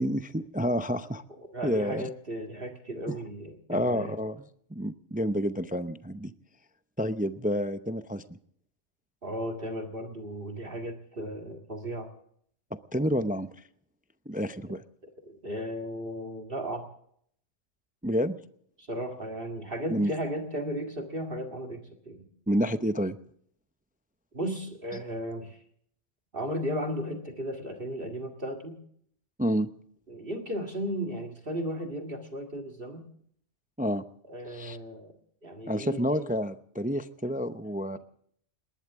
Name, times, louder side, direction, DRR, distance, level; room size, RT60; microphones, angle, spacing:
voice 1, 0.0-1.2 1.6-2.0 3.1-3.2 3.7-4.4 4.7-6.3 7.0-8.4 12.7-13.5 14.3-14.8 18.0-18.4 19.9-20.1 22.5-23.2 29.4-29.7 33.8-34.0 34.5-34.8 35.7-38.0, equal, 10° right, 11 dB, 0.4 m, -29 dB
voice 2, 1.4-4.2 9.2-12.1 15.2-16.9 18.8-22.3 24.3-25.6 26.3-28.8 30.1-33.1 34.3-35.1 35.4-36.3, equal, 50° right, 3 dB, 2.1 m, -35 dB
20.0 x 19.5 x 3.6 m, 0.65 s
omnidirectional pair, 1.2 m